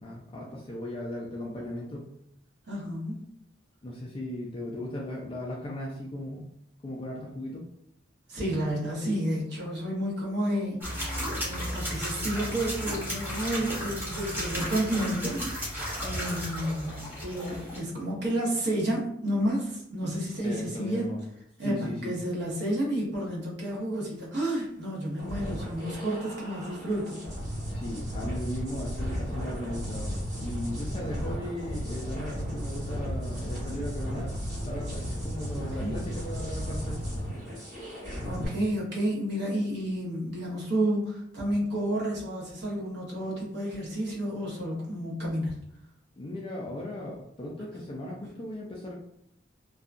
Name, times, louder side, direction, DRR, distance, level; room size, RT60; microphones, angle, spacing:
voice 1, 0.0-2.1 3.8-6.4 6.8-7.6 20.4-21.2 21.6-22.1 27.7-34.3 34.6-37.0 46.2-48.9, left 1 dB, 30° left, -3 dB, 0.4 m, -37 dB
voice 2, 2.7-3.2 8.3-10.8 11.3-15.6 16.0-21.1 21.6-27.2 35.8-36.1 38.2-45.5, right 1 dB, 65° right, -4 dB, 1.0 m, -31 dB
sound 1, 10.8-17.8, equal, 10° right, 0.9 m, -34 dB
sound 2, 25.2-38.5, equal, 40° right, 1.4 m, -34 dB
2.7 x 2.3 x 2.5 m, 0.74 s
head